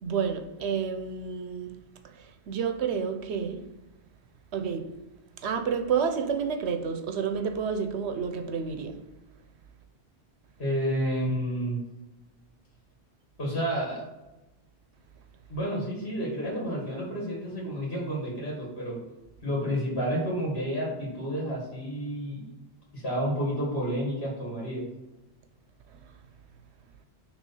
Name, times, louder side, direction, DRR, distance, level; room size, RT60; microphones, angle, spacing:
voice 1, 0.0-1.7 2.2-3.6 4.5-4.9 5.4-8.9, right 6 dB, 90° right, 1.0 m, -29 dB
voice 2, 10.6-11.8 13.4-14.1 15.5-19.0 19.4-22.5 22.9-24.9, equal, 70° left, 2.2 m, -30 dB
6.2 x 3.5 x 5.5 m
omnidirectional pair, 1.1 m